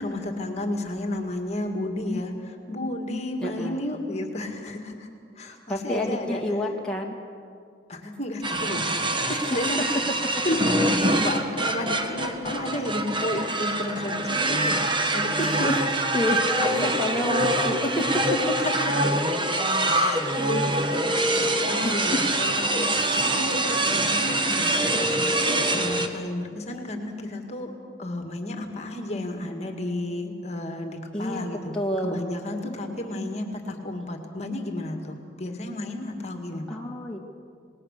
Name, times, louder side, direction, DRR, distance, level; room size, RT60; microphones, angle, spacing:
voice 1, 0.0-5.1 5.4-6.4 7.9-9.8 10.4-14.8 15.1-15.5 16.5-16.7 18.6-19.1 19.9-20.8 21.1-22.9 23.2-31.7 32.0-36.8, left 1 dB, 35° left, 4 dB, 2.1 m, -32 dB
voice 2, 3.4-3.9 5.7-7.2 9.3-9.7 10.1-10.3 15.4-18.6 19.6-19.7 20.4-20.5 21.8-22.0 22.3-22.5 25.8-25.9 31.1-31.5 31.7-32.2 32.9-33.2 36.7-37.2, left 1 dB, 5° left, -2 dB, 1.9 m, -29 dB
sound 1, 8.4-26.1, right 1 dB, 25° right, 1.4 m, -25 dB
28.0 x 19.5 x 6.7 m, 2.3 s
head